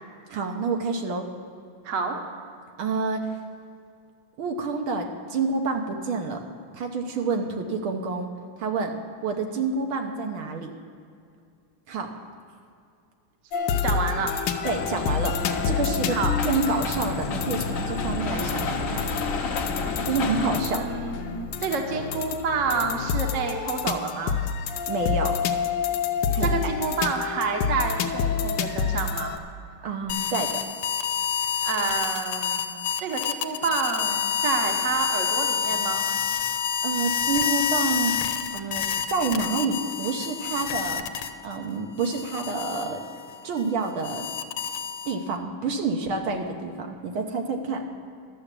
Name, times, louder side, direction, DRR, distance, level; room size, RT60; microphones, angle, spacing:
voice 1, 0.3-1.3 2.8-3.4 4.4-6.4 6.7-8.3 8.6-8.9 9.2-10.7 11.9-12.1 14.6-16.2 16.4-19.1 20.1-20.9 24.9-25.4 26.3-26.5 29.8-30.6 36.8-41.1 41.4-43.0 43.4-44.3 45.1-47.8, right 4 dB, 75° right, 3 dB, 1.8 m, -28 dB
voice 2, 1.8-2.1 13.8-14.3 16.1-16.3 19.8-20.1 20.7-24.3 26.4-29.3 31.6-36.0, right 5 dB, 45° right, 3 dB, 1.2 m, -29 dB
sound 1, 13.5-29.4, left 6 dB, 70° left, 1.3 m, -28 dB
sound 2, 14.6-20.6, left 4 dB, 50° left, 1.0 m, -30 dB
sound 3, 30.1-41.6 42.0-45.4, left 8 dB, 90° left, 1.5 m, -28 dB
12.0 x 7.0 x 8.4 m, 2.4 s
omnidirectional pair, 2.4 m